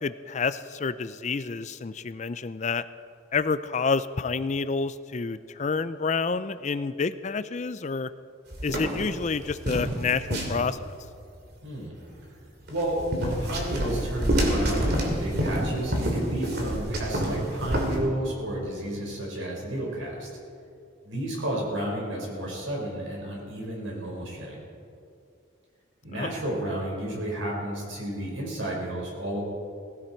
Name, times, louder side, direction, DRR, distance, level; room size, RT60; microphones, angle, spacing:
voice 1, 0.0-2.8 3.3-8.1 8.6-10.9 26.1-26.3, left 4 dB, 35° left, 13 dB, 0.4 m, -29 dB
sound 1, 8.5-11.0 12.7-18.0, right 1 dB, 55° right, 2.8 m, -28 dB
voice 2, 11.6-11.9 12.7-20.3 21.0-24.6 26.0-29.4, right 1 dB, 80° right, -2 dB, 5.0 m, -32 dB
18.5 x 16.0 x 4.5 m, 2.4 s
head